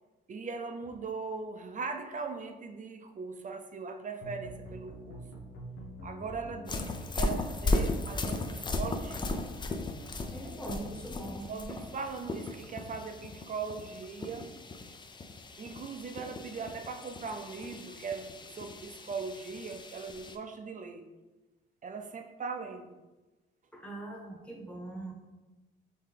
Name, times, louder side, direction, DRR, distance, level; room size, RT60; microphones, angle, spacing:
voice 1, 0.3-5.2 6.0-9.4 11.5-14.5 15.6-21.1 21.8-23.0, right 4 dB, 40° right, 6 dB, 0.5 m, -40 dB
sound 1, 4.2-11.2, left 1 dB, 80° left, 0.9 m, -46 dB
sound 2, 6.7-20.4, left 2 dB, 25° left, 0.4 m, -37 dB
voice 2, 10.3-11.5 23.7-25.1, right 2 dB, 5° left, -1 dB, 1.1 m, -41 dB
5.6 x 2.8 x 3.3 m, 1.1 s
cardioid pair, 90°, 20 cm